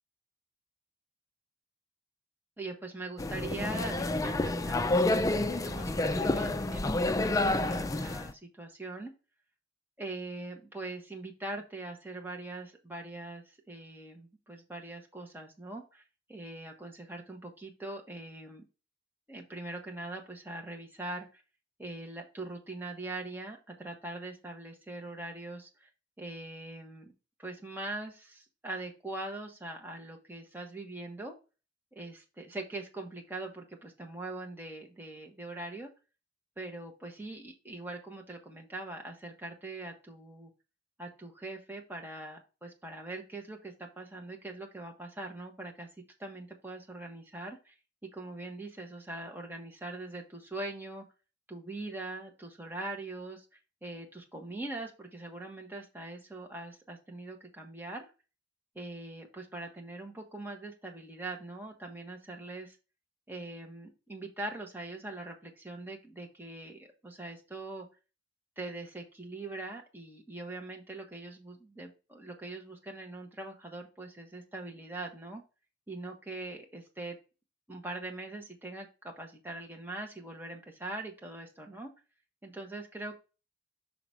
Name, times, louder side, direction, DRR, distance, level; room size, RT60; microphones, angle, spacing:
voice 1, 2.6-9.1 10.0-16.0 16.3-18.6 19.3-21.4 21.8-25.9 26.2-27.1 27.4-31.3 31.9-35.9 36.6-40.5 41.0-45.9 46.2-47.7 48.1-51.0 51.5-53.4 53.8-58.1 58.7-62.8 63.3-67.9 68.6-75.4 75.9-77.2 77.7-81.9 82.4-83.2, right 2 dB, 10° right, 1 dB, 1.3 m, -42 dB
sound 1, 3.2-8.3, left 2 dB, 20° left, 0.3 m, -29 dB
6.0 x 3.9 x 4.7 m, 0.31 s
head